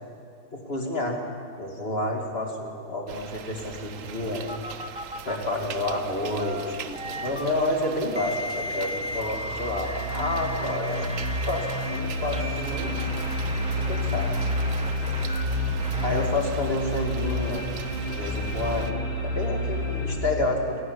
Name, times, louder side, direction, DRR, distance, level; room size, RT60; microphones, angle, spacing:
voice 1, 0.5-1.2 1.6-4.5 5.2-6.8 7.1-11.1 11.5-12.9 13.9-14.3 16.0-17.6 18.1-20.8, left 1 dB, 30° left, 1 dB, 2.8 m, -29 dB
sound 1, 3.1-18.9, right 7 dB, 55° right, 0.9 m, -41 dB
sound 2, 4.5-5.4 6.1-7.4 8.1-12.0 12.3-16.3, left 1 dB, 5° right, 0.8 m, -36 dB
sound 3, 8.8-20.2, left 1 dB, 65° left, 3.7 m, -29 dB
29.0 x 12.0 x 9.7 m, 2.4 s
omnidirectional pair, 2.3 m